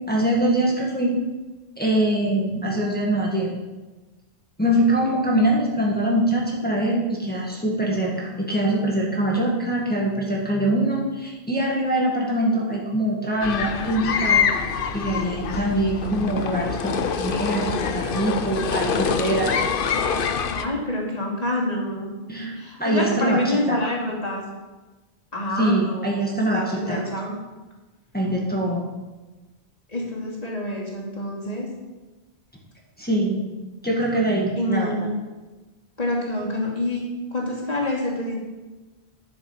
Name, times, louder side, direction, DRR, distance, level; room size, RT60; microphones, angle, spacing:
voice 1, 0.1-1.2 1.8-3.5 4.6-14.4 14.9-19.6 22.3-23.8 25.6-27.0 28.1-28.9 33.0-33.4 33.8-34.9, right 1 dB, 10° left, -3 dB, 1.9 m, -23 dB
sound 1, 13.4-20.6, left 6 dB, 60° left, 0.8 m, -25 dB
voice 2, 20.5-22.1 22.5-24.4 25.3-26.2 26.5-27.3 29.9-31.7 34.5-35.1 36.0-37.0 37.3-38.4, left 1 dB, 35° left, -4 dB, 2.9 m, -27 dB
11.5 x 7.1 x 5.7 m, 1.2 s
omnidirectional pair, 1.1 m